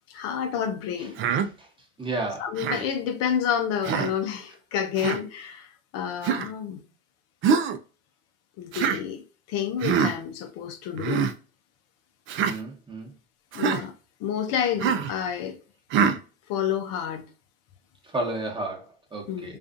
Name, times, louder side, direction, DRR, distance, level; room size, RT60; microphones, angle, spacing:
voice 1, 0.1-1.2 2.4-6.8 8.6-9.2 9.5-11.3 13.5-13.9 14.2-15.6 16.5-17.3 19.3-19.5, left 8 dB, 55° left, 0.6 m, -29 dB
Human voice, 1.2-1.5 2.6-2.9 3.8-4.1 5.0-5.2 6.2-6.5 7.4-7.8 8.7-9.0 9.8-10.1 11.0-11.3 12.3-12.6 13.5-13.8 14.8-15.1 15.9-16.2, right 7 dB, 40° right, 0.4 m, -24 dB
voice 2, 2.0-2.4 12.4-13.1 18.0-19.6, right 2 dB, 15° right, 1.1 m, -32 dB
2.5 x 2.4 x 2.4 m
hypercardioid pair, 90°, 30 cm